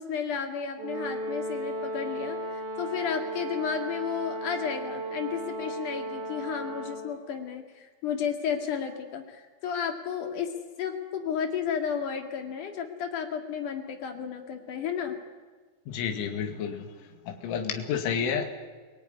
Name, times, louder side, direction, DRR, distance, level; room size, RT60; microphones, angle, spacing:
voice 1, 0.0-15.2, left 7 dB, 50° left, 5 dB, 3.2 m, -33 dB
Brass instrument, 0.8-7.2, right 1 dB, 90° right, 6.1 m, -35 dB
voice 2, 15.9-16.9 17.3-18.5, left 7 dB, 80° left, 4 dB, 4.6 m, -30 dB
29.5 x 18.5 x 9.8 m, 1.4 s
omnidirectional pair, 5.5 m